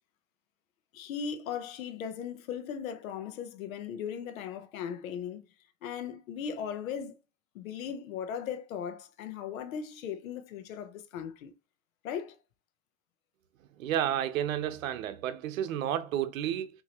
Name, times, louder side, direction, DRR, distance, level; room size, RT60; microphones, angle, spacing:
voice 1, 0.9-5.4 5.8-7.1 7.5-11.5 12.0-12.4, left 8 dB, 85° left, 0.9 m, -38 dB
voice 2, 13.8-16.7, right 10 dB, 80° right, 0.8 m, -31 dB
5.8 x 2.9 x 2.9 m
supercardioid pair, 175°, 40 cm